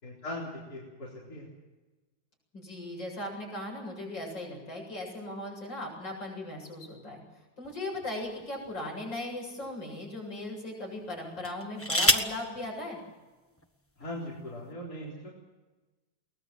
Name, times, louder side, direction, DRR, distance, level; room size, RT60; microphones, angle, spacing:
voice 1, 0.0-1.5 14.0-15.3, left 1 dB, 50° left, -5 dB, 4.8 m, -40 dB
voice 2, 2.5-7.2 7.6-13.0, left 1 dB, 75° left, 0 dB, 8.5 m, -38 dB
sound 1, 7.6-8.9 9.6-9.7 11.4-12.4 13.6-13.7 14.0-14.4, left 1 dB, 10° left, 1.0 m, -28 dB
23.0 x 19.5 x 7.7 m, 1.2 s
omnidirectional pair, 2.0 m